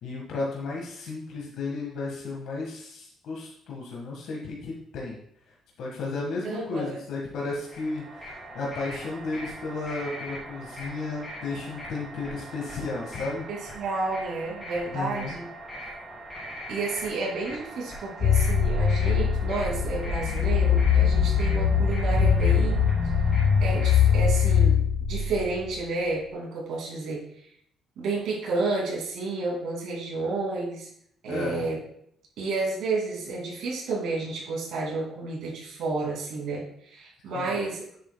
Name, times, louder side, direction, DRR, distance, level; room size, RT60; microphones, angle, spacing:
voice 1, 0.0-5.2 5.8-13.5 14.9-15.3 31.3-31.6 37.3-37.5, left 3 dB, 70° left, -2 dB, 1.6 m, -33 dB
voice 2, 6.4-6.9 13.5-15.5 16.7-22.8 23.6-24.8 25.1-27.2 28.0-30.9 31.2-31.8 32.4-37.8, right 3 dB, 75° right, -3 dB, 2.5 m, -31 dB
sound 1, 7.6-24.6, equal, 10° left, 3.2 m, -41 dB
sound 2, 18.2-25.7, left 6 dB, 45° left, 1.3 m, -22 dB
10.0 x 7.3 x 2.3 m, 0.69 s
cardioid pair, 150°, 0 cm